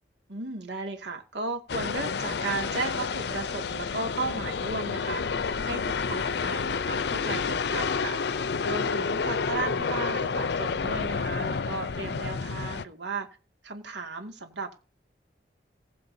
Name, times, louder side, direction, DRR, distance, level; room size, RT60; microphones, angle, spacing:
voice 1, 0.3-5.3 5.6-8.2 8.6-13.3 13.6-14.8, right 3 dB, 90° right, 2.2 m, -35 dB
sound 1, 1.7-12.9, left 5 dB, 65° left, 0.5 m, -29 dB
20.0 x 7.5 x 2.7 m
head